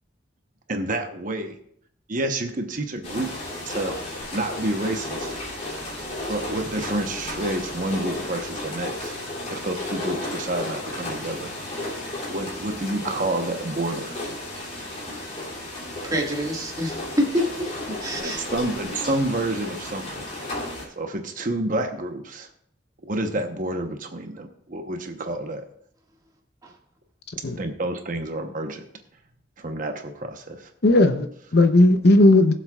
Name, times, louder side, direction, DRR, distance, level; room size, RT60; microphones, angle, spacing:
voice 1, 0.7-1.5 2.1-3.3 3.6-4.0 4.3-5.3 6.3-9.2 9.5-11.5 12.3-14.3 18.2-20.6 21.0-22.5 23.0-25.7 27.6-28.9 29.6-30.7, right 1 dB, 45° right, 1.0 m, -29 dB
sound 1, 3.0-20.9, left 1 dB, 40° left, 2.9 m, -33 dB
voice 2, 16.0-18.5 26.6-26.7, equal, 20° right, 1.8 m, -27 dB
voice 3, 30.8-32.5, left 2 dB, 60° left, 0.8 m, -16 dB
21.0 x 7.5 x 2.4 m
head